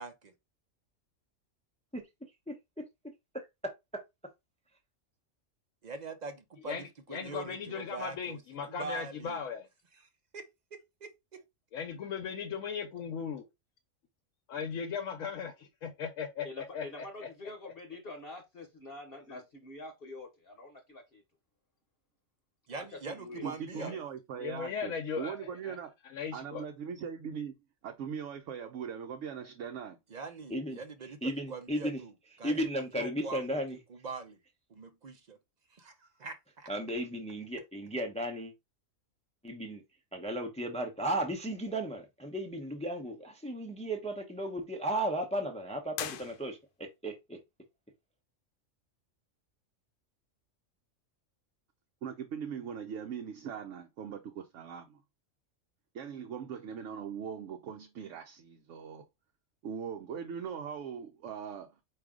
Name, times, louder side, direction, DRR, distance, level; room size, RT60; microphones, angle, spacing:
voice 1, 0.0-0.3 5.8-8.4 8.6-9.4 10.3-11.4 22.7-23.9 30.1-32.1 32.4-32.7 32.9-33.5 33.9-34.4 34.7-35.4 35.7-36.7, right 4 dB, 50° right, 0.5 m, -43 dB
voice 2, 6.6-9.7 11.7-13.5 14.5-17.3 19.3-19.4 23.7-24.0 24.4-25.8 26.0-26.6, left 6 dB, 80° left, 1.1 m, -38 dB
voice 3, 16.4-21.2 22.7-23.5, left 2 dB, 50° left, 1.1 m, -46 dB
voice 4, 23.4-25.9 26.3-27.5 27.8-30.0 52.0-55.0 55.9-59.0 59.6-61.8, right 7 dB, 70° right, 0.9 m, -40 dB
voice 5, 31.2-32.0 32.4-33.8 36.7-38.5 39.4-39.8 40.1-47.4, right 1 dB, 5° left, 0.5 m, -35 dB
sound 1, 45.9-47.0, left 9 dB, 65° left, 0.5 m, -41 dB
4.8 x 2.6 x 3.6 m
omnidirectional pair, 1.4 m